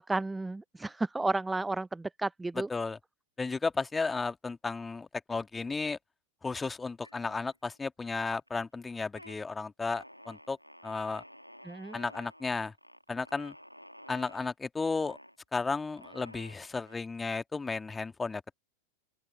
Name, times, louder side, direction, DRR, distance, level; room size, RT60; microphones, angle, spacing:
voice 1, 0.0-2.7 11.7-12.0, right 2 dB, 10° right, 0.3 m, -32 dB
voice 2, 3.4-6.0 6.4-10.6 10.8-11.2 11.9-12.7 13.1-13.5 14.1-15.2 15.5-18.6, left 4 dB, 10° left, 1.8 m, -34 dB
sound 1, 7.0-7.8 8.1-8.6 9.0-9.4 9.9-14.5 15.0-15.4 16.0-17.0, equal, 90° left, 2.1 m, -52 dB
open air
figure-of-eight pair, 90°, 0 cm